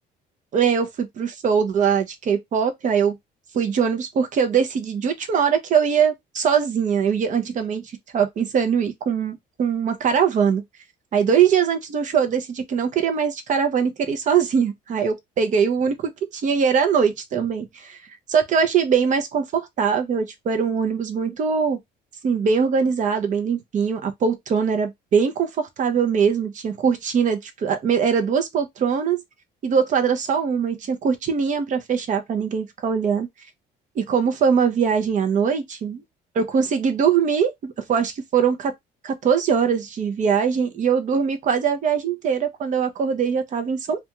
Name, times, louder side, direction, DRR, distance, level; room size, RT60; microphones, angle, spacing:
voice 1, 0.5-3.1 3.5-7.8 8.1-10.6 11.1-18.0 18.3-21.8 22.2-29.2 29.6-33.3 34.0-36.0 36.3-38.7 39.0-44.0, right 6 dB, 50° right, 0.7 m, -22 dB
2.4 x 2.3 x 2.9 m
cardioid pair, 110°, 17 cm